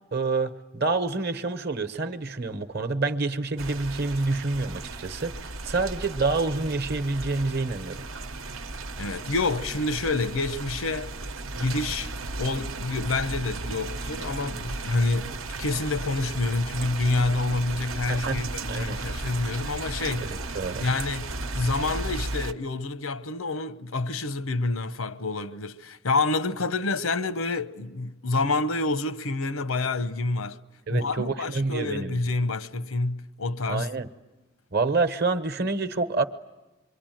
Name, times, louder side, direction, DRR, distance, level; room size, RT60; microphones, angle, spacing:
voice 1, 0.1-8.1 18.1-18.4 18.7-19.0 20.2-20.8 30.9-32.2 33.7-34.1 34.7-36.2, right 3 dB, 50° right, 1.0 m, -28 dB
sound 1, 3.6-22.5, right 3 dB, 80° right, 1.0 m, -35 dB
voice 2, 9.0-11.1 11.6-12.1 12.4-20.4 20.8-30.6 30.9-33.9, left 3 dB, 90° left, 0.9 m, -28 dB
27.0 x 23.5 x 9.1 m
head